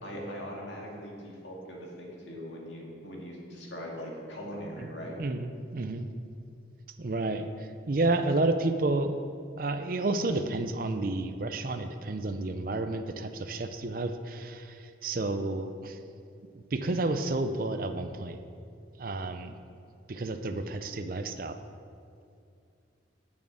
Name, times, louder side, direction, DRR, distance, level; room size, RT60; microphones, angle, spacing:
voice 1, 0.0-5.2, equal, 75° left, -2 dB, 2.1 m, -41 dB
voice 2, 5.2-6.1 7.0-9.2 9.6-16.0 16.5-18.4 19.0-19.5 20.1-21.6, right 2 dB, 50° right, 8 dB, 0.5 m, -31 dB
7.0 x 6.4 x 7.8 m, 2.5 s
head